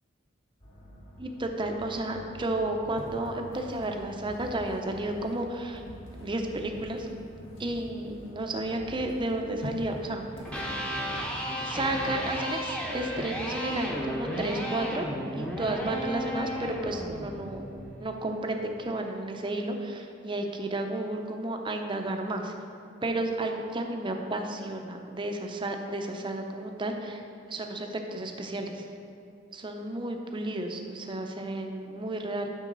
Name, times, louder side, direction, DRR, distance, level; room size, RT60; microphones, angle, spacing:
sound 1, 0.6-17.8, left 1 dB, 50° left, 2.1 m, -50 dB
voice 1, 1.2-5.8 6.2-7.1 7.6-10.2 11.6-15.1 15.3-22.5 23.0-27.2 27.5-28.9 29.5-32.5, right 1 dB, 25° right, 3 dB, 0.6 m, -32 dB
sound 2, 2.9-8.5 8.8-11.7, equal, 75° left, 1.2 m, -45 dB
Electric guitar, 10.4-18.4, equal, 5° left, 0.8 m, -34 dB
9.2 x 6.3 x 3.9 m, 2.4 s
head